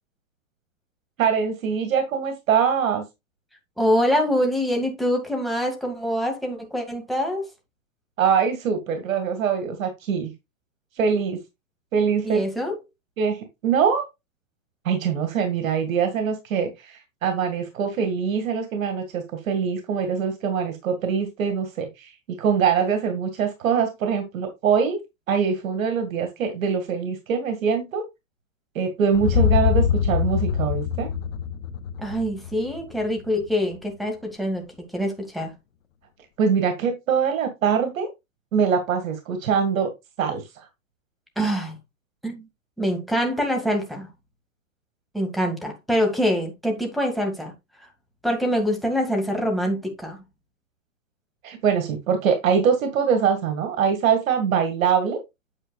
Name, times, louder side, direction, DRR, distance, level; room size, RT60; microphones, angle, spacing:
voice 1, 1.2-3.0 8.2-10.3 11.0-11.4 11.9-12.4 13.2-14.0 14.8-22.1 22.4-25.0 25.3-28.0 28.7-31.1 36.4-38.1 38.5-39.9 40.2-40.7 51.4-55.2, right 6 dB, 70° right, 2.1 m, -23 dB
voice 2, 3.8-7.5 12.2-12.8 32.0-35.5 41.4-41.8 42.2-42.5 42.8-44.1 45.1-47.5 48.2-50.2, equal, ahead, 2.0 m, -25 dB
sound 1, 29.1-33.2, left 8 dB, 65° left, 1.2 m, -24 dB
8.9 x 7.3 x 2.3 m
hypercardioid pair, 140°, 41 cm